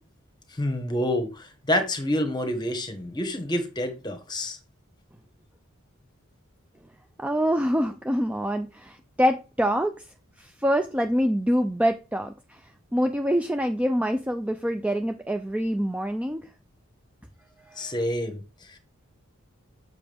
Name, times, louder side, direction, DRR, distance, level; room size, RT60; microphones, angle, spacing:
voice 1, 0.5-4.6 17.8-18.4 18.7-18.8, left 1 dB, 20° left, 1.4 m, -28 dB
voice 2, 7.2-10.1 10.4-12.6 12.9-16.5 17.7-17.9, equal, 5° right, 0.4 m, -25 dB
7.3 x 6.8 x 3.5 m
head